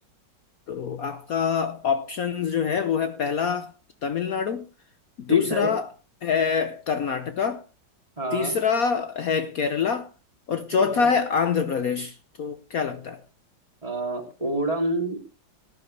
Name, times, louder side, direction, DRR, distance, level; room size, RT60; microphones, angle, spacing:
voice 1, 0.7-3.7 4.0-4.7 5.2-5.9 6.2-7.6 8.3-10.1 10.5-13.2, left 6 dB, 60° left, 1.2 m, -25 dB
voice 2, 5.3-5.7 8.2-8.6 10.7-11.1 13.8-15.2, right 1 dB, 20° right, 2.8 m, -28 dB
19.0 x 11.0 x 3.3 m
omnidirectional pair, 2.0 m